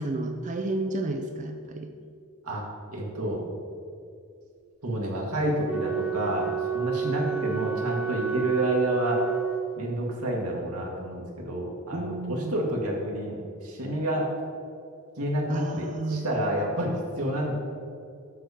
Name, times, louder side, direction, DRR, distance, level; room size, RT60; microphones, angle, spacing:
voice 1, 0.0-1.9 7.0-7.6 11.9-12.5 15.5-16.3, right 2 dB, 35° right, 5 dB, 0.5 m, -31 dB
voice 2, 2.4-3.4 4.8-9.2 9.8-13.4 13.6-14.3 15.2-17.5, right 1 dB, 85° right, -2 dB, 1.7 m, -29 dB
Wind instrument woodwind instrument, 5.6-10.1, right 8 dB, 5° right, 1.0 m, -30 dB
7.6 x 6.8 x 4.9 m, 2.4 s
head